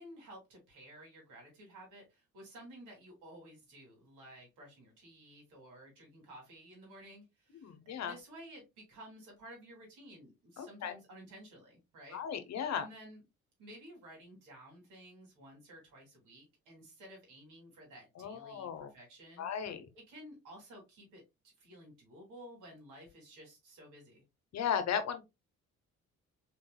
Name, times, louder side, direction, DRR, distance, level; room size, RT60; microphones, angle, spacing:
voice 1, 0.0-12.2 12.7-13.2 13.6-19.5 19.9-21.2 21.6-24.2, right 1 dB, 85° right, 2.7 m, -54 dB
voice 2, 7.5-8.1 10.6-10.9 12.1-12.9 18.2-18.9 19.4-19.9 24.5-25.2, left 8 dB, 60° left, 1.0 m, -36 dB
4.1 x 3.8 x 2.3 m
cardioid pair, 90°, 30 cm